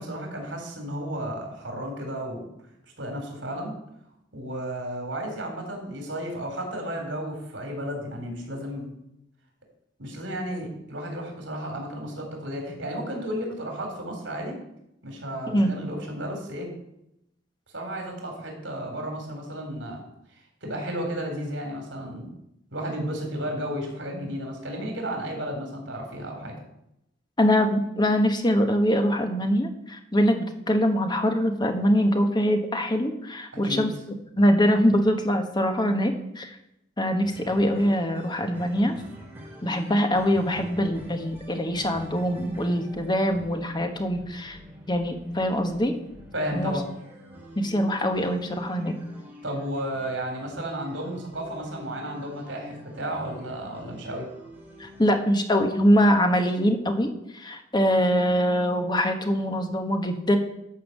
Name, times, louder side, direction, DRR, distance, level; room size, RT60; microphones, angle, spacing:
voice 1, 0.0-2.4 3.0-3.7 4.3-8.9 10.0-14.6 15.0-16.7 17.7-20.0 20.6-22.3 22.7-26.5 33.6-33.8 46.3-46.8 49.4-54.3, equal, 75° right, 2 dB, 3.8 m, -33 dB
voice 2, 27.4-33.9 34.4-36.5 37.0-38.9 39.6-44.6 44.9-45.9 46.5-46.7 47.6-48.9 54.8-60.4, equal, 25° left, 5 dB, 1.4 m, -23 dB
sound 1, 37.2-55.1, equal, 10° right, 2.7 m, -46 dB
12.0 x 5.7 x 7.7 m, 0.82 s
head